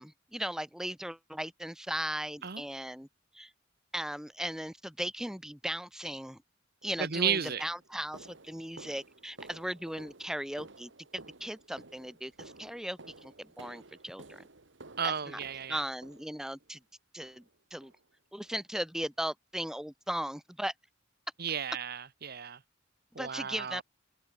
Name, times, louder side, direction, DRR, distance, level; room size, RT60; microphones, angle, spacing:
voice 1, 0.0-3.1 3.3-3.5 3.9-6.4 6.8-14.4 15.0-15.4 15.7-16.8 17.1-17.4 17.7-17.9 18.3-20.7 23.1-23.8, equal, 5° right, 1.0 m, -37 dB
sound 1, 6.8-7.0 7.5-16.7 17.2-17.6 17.8-18.0 18.4-18.6 19.0-19.1 19.6-19.7, right 2 dB, 70° right, 1.9 m, -53 dB
voice 2, 7.0-7.6 15.0-15.8 21.4-22.6 23.1-23.8, right 7 dB, 55° right, 1.0 m, -33 dB
head